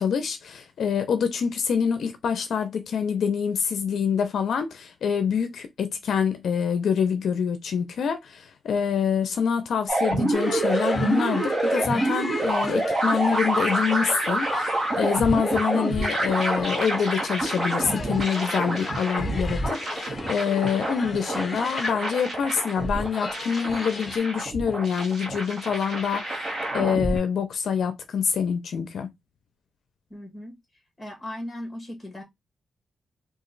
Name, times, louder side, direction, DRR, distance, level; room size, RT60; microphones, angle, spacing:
voice 1, 0.0-19.6 19.9-26.5 26.7-29.1, left 7 dB, 65° left, 0.5 m, -26 dB
sound 1, 9.9-27.2, right 2 dB, 35° right, 1.3 m, -27 dB
sound 2, 10.3-24.2, left 3 dB, 25° left, 0.6 m, -36 dB
voice 2, 30.1-30.6 31.0-32.2, left 1 dB, 10° left, 1.4 m, -37 dB
3.0 x 2.4 x 3.8 m
wide cardioid pair, 165°, 0 cm